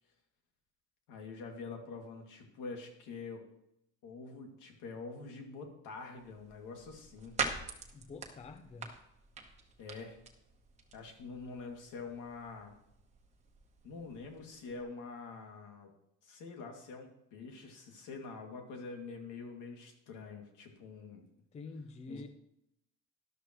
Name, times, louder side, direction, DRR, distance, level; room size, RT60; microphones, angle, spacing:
voice 1, 1.1-3.4 4.0-7.3 9.8-10.2 10.9-12.7 13.8-15.9 16.2-21.2 22.1-22.3, left 4 dB, 80° left, 2 dB, 2.4 m, -46 dB
sound 1, 6.1-14.8, right 5 dB, 20° right, 1.1 m, -45 dB
voice 2, 7.9-8.9 21.5-22.3, left 3 dB, 20° left, 9 dB, 0.5 m, -47 dB
12.5 x 12.0 x 3.1 m, 0.78 s
cardioid pair, 180°, 31 cm